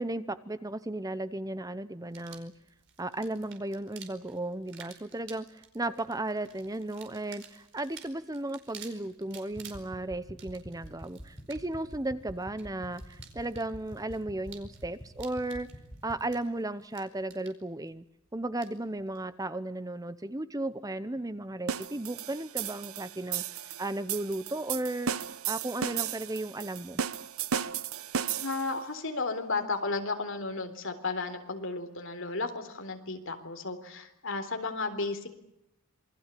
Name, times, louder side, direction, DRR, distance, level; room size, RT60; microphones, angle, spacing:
voice 1, 0.0-2.5 3.0-15.7 16.0-18.0 18.3-25.1 25.5-27.0, right 2 dB, 15° right, 14 dB, 0.9 m, -35 dB
sound 1, 2.1-19.3, right 7 dB, 55° right, 4.8 m, -53 dB
sound 2, 9.5-16.3, equal, 10° left, 6.4 m, -48 dB
sound 3, 21.7-28.8, right 8 dB, 75° right, 1.0 m, -35 dB
voice 2, 28.4-35.3, left 3 dB, 60° left, 6 dB, 3.9 m, -33 dB
27.5 x 21.5 x 8.5 m, 0.84 s
head